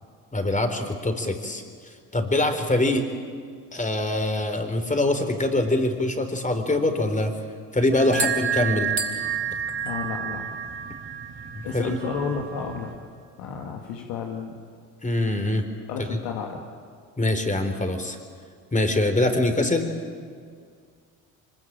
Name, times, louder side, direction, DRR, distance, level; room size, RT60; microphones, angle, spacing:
voice 1, 0.3-1.6 2.1-3.1 3.7-7.3 7.7-8.9 11.5-12.0 15.0-15.6 16.0-16.2 17.2-18.2 18.7-19.9, left 1 dB, 15° left, 7 dB, 3.9 m, -24 dB
sound 1, 7.9-12.9, right 7 dB, 30° right, 4.3 m, -30 dB
voice 2, 9.8-10.4 11.6-12.9 13.4-14.6 15.9-16.6, left 6 dB, 80° left, 1 dB, 2.2 m, -32 dB
24.0 x 21.5 x 8.9 m, 2.1 s
hypercardioid pair, 65°, 43 cm